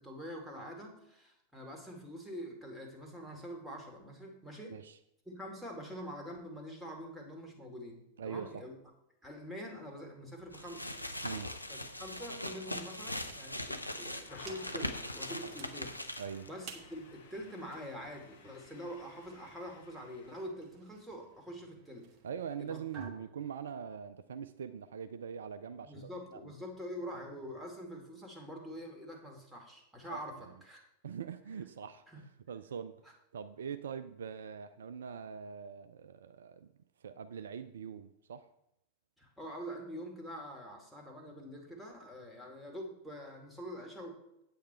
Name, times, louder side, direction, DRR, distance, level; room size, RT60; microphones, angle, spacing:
voice 1, 0.0-4.8 5.3-8.7 9.2-10.9 11.7-16.0 16.5-22.1 22.6-22.8 25.8-30.8 32.1-32.2 39.2-44.4, equal, 5° right, 0 dB, 2.4 m, -45 dB
voice 2, 8.2-8.6 11.2-11.5 16.2-16.5 22.2-26.5 30.1-30.2 31.0-32.2 32.5-33.0 33.3-36.7 37.0-38.4, right 7 dB, 65° right, 11 dB, 0.4 m, -43 dB
sound 1, 10.4-23.1, right 5 dB, 35° right, 1.4 m, -57 dB
sound 2, 10.5-16.5, left 1 dB, 85° left, 0.7 m, -41 dB
sound 3, 14.3-20.5, left 5 dB, 60° left, 1.4 m, -57 dB
8.6 x 8.6 x 4.5 m, 0.82 s
figure-of-eight pair, 90°, 0 cm